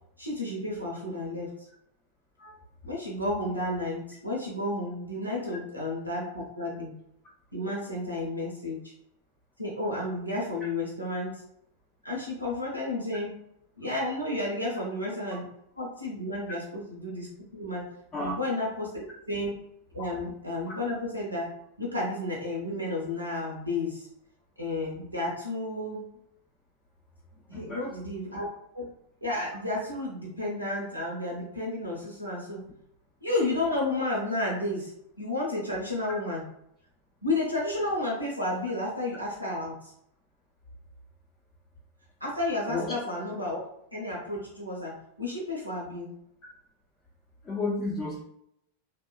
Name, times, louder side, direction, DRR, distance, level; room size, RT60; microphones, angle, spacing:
voice 1, 0.2-1.7 2.8-6.9 7.5-8.9 9.6-11.4 12.0-13.3 13.8-15.5 15.8-17.9 18.2-19.5 19.9-21.5 21.8-24.1 24.6-26.0 27.5-28.9 29.2-32.6 33.2-34.9 35.2-36.4 37.2-39.9 42.2-43.6 43.9-46.1, left 2 dB, 85° right, -4 dB, 0.6 m, -32 dB
voice 2, 27.5-27.9 42.7-43.0 47.4-48.2, left 2 dB, 25° left, -4 dB, 0.5 m, -32 dB
2.8 x 2.1 x 2.3 m, 0.75 s
figure-of-eight pair, 90°, 0 cm